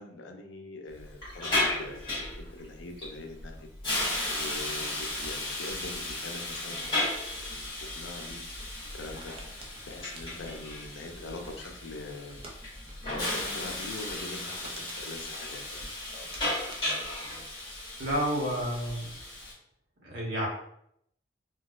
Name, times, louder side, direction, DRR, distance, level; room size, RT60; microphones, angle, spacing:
voice 1, 0.0-3.7 4.3-7.1 7.8-8.4 8.9-9.3 9.8-12.5 13.0-15.8, left 2 dB, 85° left, 4 dB, 0.5 m, -43 dB
Hiss, 0.9-19.5, left 1 dB, 25° left, 1.3 m, -35 dB
sound 1, 9.1-11.7 12.3-12.6 12.9-13.1 13.4-13.5 13.9-14.0 14.2-15.9 16.3-18.4 18.6-19.1, right 2 dB, 30° right, 0.5 m, -49 dB
voice 2, 18.0-19.1 20.0-20.5, equal, 80° right, -4 dB, 1.1 m, -30 dB
3.9 x 2.3 x 2.4 m, 0.73 s
head